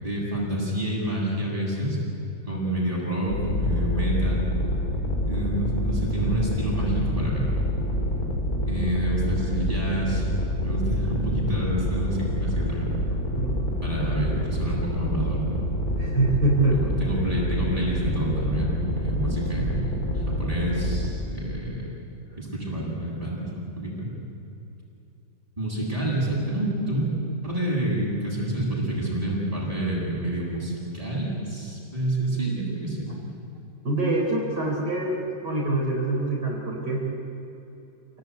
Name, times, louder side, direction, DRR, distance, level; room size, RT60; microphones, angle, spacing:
voice 1, 0.0-2.0 2.5-4.4 5.3-7.5 8.7-10.3 10.6-12.9 13.7-15.6 16.7-21.8 22.4-23.5 23.8-24.1 25.6-27.1 27.4-33.1, right 1 dB, 20° right, -5 dB, 8.3 m, -28 dB
sound 1, 3.3-21.1, left 1 dB, 55° left, 4.2 m, -27 dB
voice 2, 16.0-16.8 33.8-37.1, right 2 dB, 70° right, -3 dB, 4.8 m, -24 dB
28.0 x 18.5 x 9.6 m, 2.7 s
omnidirectional pair, 1.9 m